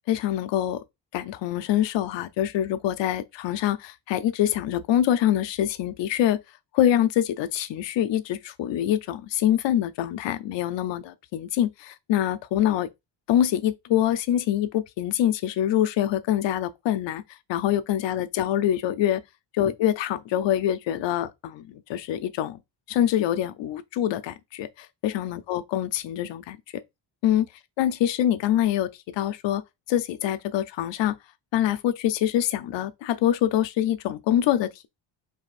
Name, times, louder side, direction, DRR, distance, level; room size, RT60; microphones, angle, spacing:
voice 1, 0.1-0.8 1.1-6.4 6.7-12.9 13.3-17.2 17.5-19.2 19.5-22.6 22.9-26.6 27.2-27.5 27.8-29.6 29.9-31.1 31.5-34.9, left 11 dB, 65° left, 0.5 m, -25 dB
4.9 x 3.3 x 2.4 m
cardioid pair, 155°, 48 cm